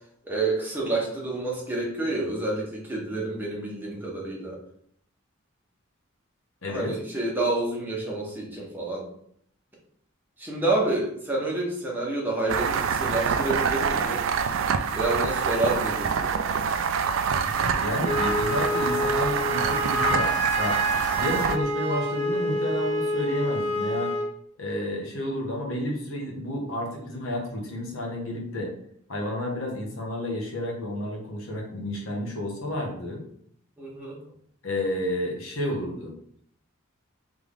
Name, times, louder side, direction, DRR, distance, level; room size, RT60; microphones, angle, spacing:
voice 1, 0.2-4.6 6.7-9.1 10.4-14.2 14.9-16.5 33.8-34.2, right 2 dB, 10° right, -3 dB, 1.1 m, -28 dB
voice 2, 6.6-6.9 17.4-20.8 21.1-24.1 24.6-28.7 29.1-33.2 34.6-36.1, left 1 dB, 80° left, 0 dB, 1.2 m, -31 dB
sound 1, 12.5-21.6, right 6 dB, 65° right, 0.3 m, -26 dB
Wind instrument woodwind instrument, 18.0-24.3, equal, 35° right, 1.0 m, -27 dB
3.6 x 3.4 x 3.5 m, 0.66 s
head